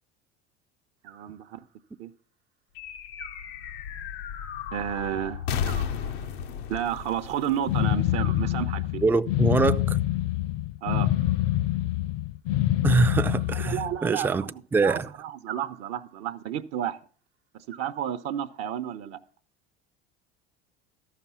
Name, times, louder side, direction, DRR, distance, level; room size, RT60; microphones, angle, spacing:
voice 1, 1.0-1.6 2.0-2.1 4.7-5.4 6.7-9.0 10.8-11.1 13.5-17.0 17.8-19.2, right 10 dB, 55° right, 0.7 m, -31 dB
Animal, 1.0-1.9 3.2-4.2 5.6-6.7 8.1-9.2 10.9-11.8 13.1-14.2 15.5-16.4 17.7-18.6, right 10 dB, 80° right, 1.0 m, -46 dB
sound 1, 2.8-8.5, left 8 dB, 75° left, 0.8 m, -34 dB
sound 2, 7.7-14.0, left 14 dB, 50° left, 0.4 m, -26 dB
voice 2, 9.0-10.0 12.8-14.5 14.7-15.1, right 3 dB, 5° right, 0.4 m, -24 dB
13.5 x 6.0 x 5.6 m
hypercardioid pair, 80°, 31 cm